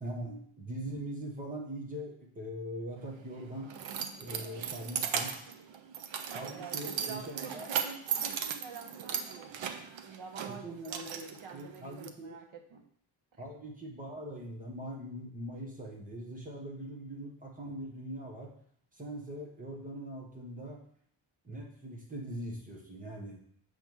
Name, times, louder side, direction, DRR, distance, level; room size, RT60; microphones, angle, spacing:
voice 1, 0.0-3.7 4.2-5.3 6.3-7.7 10.5-12.4 13.4-18.5 18.9-20.8 21.4-23.4, right 1 dB, 15° right, -1 dB, 1.3 m, -42 dB
Keys jangling, 3.0-12.1, right 7 dB, 70° right, 0.7 m, -37 dB
voice 2, 6.5-12.8 13.3-13.4, right 5 dB, 85° right, 2 dB, 1.3 m, -48 dB
6.9 x 3.5 x 6.2 m, 0.64 s
wide cardioid pair, 175°, 48 cm